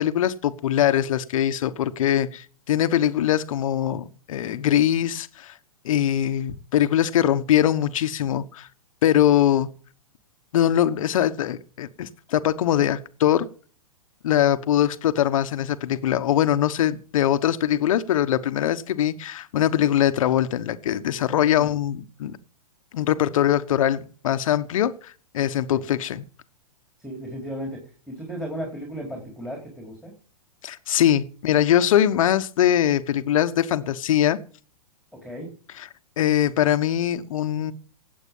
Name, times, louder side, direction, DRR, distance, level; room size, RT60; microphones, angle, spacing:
voice 1, 0.0-5.5 5.8-8.7 9.0-9.7 10.5-13.5 14.2-22.4 22.9-26.2 30.6-34.4 36.2-37.7, left 11 dB, 65° left, 1.2 m, -22 dB
voice 2, 27.0-27.8 28.1-30.1 35.2-35.5, equal, ahead, 4.5 m, -35 dB
17.5 x 8.5 x 5.5 m
hypercardioid pair, 115°, 19 cm